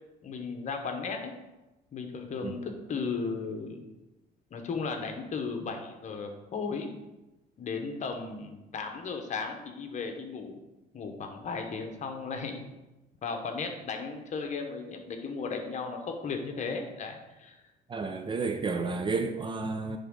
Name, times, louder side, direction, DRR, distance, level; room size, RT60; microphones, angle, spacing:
voice 1, 0.2-1.3 1.9-3.8 4.5-6.9 7.6-10.6 10.9-12.6 13.2-17.6, left 4 dB, 45° left, 4 dB, 1.0 m, -35 dB
voice 2, 17.9-20.0, right 4 dB, 30° right, 6 dB, 0.6 m, -31 dB
10.0 x 3.6 x 3.8 m, 1.0 s
cardioid pair, 110°, 17 cm